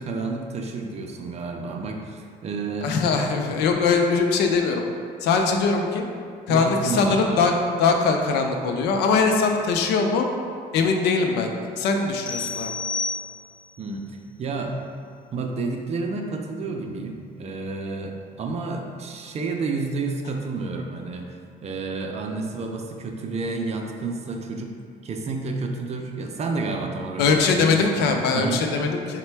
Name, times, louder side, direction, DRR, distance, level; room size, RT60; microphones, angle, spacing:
voice 1, 0.0-2.9 6.5-7.4 13.8-14.7 15.3-24.8 25.0-28.7, right 3 dB, 40° right, 2 dB, 0.5 m, -30 dB
voice 2, 2.8-4.8 5.2-6.0 6.5-7.5 7.8-10.3 10.7-12.7 27.2-29.2, left 4 dB, 80° left, 3 dB, 0.5 m, -21 dB
sound 1, 12.3-13.8, left 3 dB, 30° left, 0.3 m, -30 dB
4.1 x 2.2 x 4.4 m, 2.2 s
cardioid pair, 110°, 17 cm